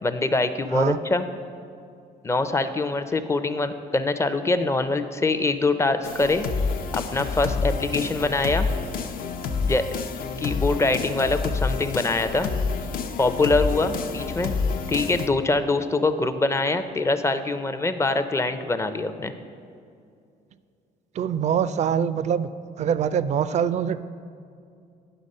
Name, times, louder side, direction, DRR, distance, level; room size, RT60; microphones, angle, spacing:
voice 1, 0.0-1.3 2.2-6.5 6.9-8.7 9.6-9.9 10.4-12.5 13.2-14.5 14.9-19.3, left 2 dB, 15° left, 10 dB, 0.5 m, -24 dB
sound 1, 6.0-15.3, left 4 dB, 60° left, 0.6 m, -28 dB
voice 2, 21.2-22.5 22.8-24.0, right 8 dB, 45° right, 15 dB, 0.4 m, -24 dB
9.9 x 6.0 x 5.3 m, 2.4 s
cardioid pair, 110°, 17 cm